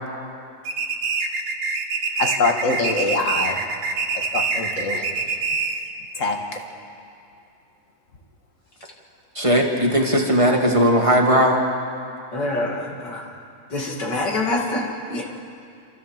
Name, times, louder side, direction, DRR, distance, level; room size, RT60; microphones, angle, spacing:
sound 1, 0.7-5.9, right 4 dB, 75° right, 1.8 m, -25 dB
voice 1, 2.2-3.6 4.3-5.0 6.2-6.4, left 3 dB, 45° left, 3 dB, 2.1 m, -23 dB
voice 2, 9.4-11.6, equal, 20° right, 0 dB, 1.9 m, -18 dB
voice 3, 12.3-13.3 13.7-15.2, left 2 dB, 70° left, -2 dB, 3.2 m, -26 dB
28.0 x 13.5 x 7.5 m, 2.5 s
omnidirectional pair, 1.9 m